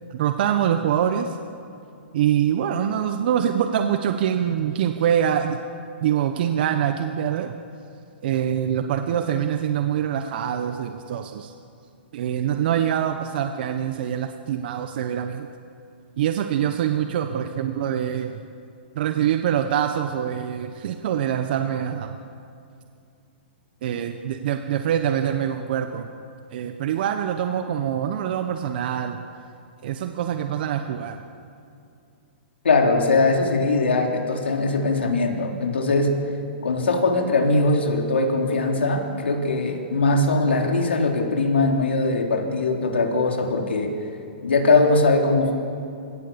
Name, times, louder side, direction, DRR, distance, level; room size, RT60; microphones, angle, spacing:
voice 1, 0.1-1.4 2.1-5.6 6.0-7.5 8.2-11.5 12.1-15.5 16.2-18.4 19.0-22.1 23.8-26.1 26.5-29.2 29.8-31.2, right 9 dB, 60° right, 7 dB, 1.2 m, -24 dB
voice 2, 32.6-36.2 36.6-43.9 44.4-45.5, left 3 dB, 90° left, 1 dB, 3.6 m, -21 dB
29.0 x 17.0 x 7.1 m, 2.6 s
hypercardioid pair, 135°, 6 cm